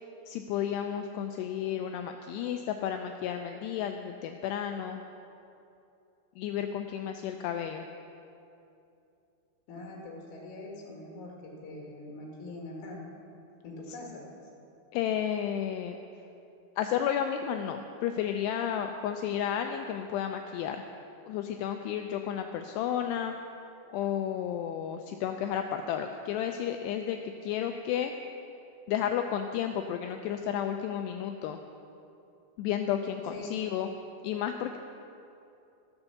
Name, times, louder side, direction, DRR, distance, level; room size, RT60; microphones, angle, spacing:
voice 1, 0.3-5.0 6.4-7.9 13.9-14.0 14.9-16.0 16.8-20.8 21.3-23.3 23.9-28.1 28.9-31.6 32.6-33.9 34.2-34.8, left 9 dB, 85° left, 5 dB, 2.4 m, -32 dB
voice 2, 9.7-13.0 13.6-14.4 33.3-33.4, left 2 dB, 60° left, -2 dB, 3.2 m, -43 dB
14.5 x 7.0 x 6.7 m, 2.7 s
omnidirectional pair, 5.2 m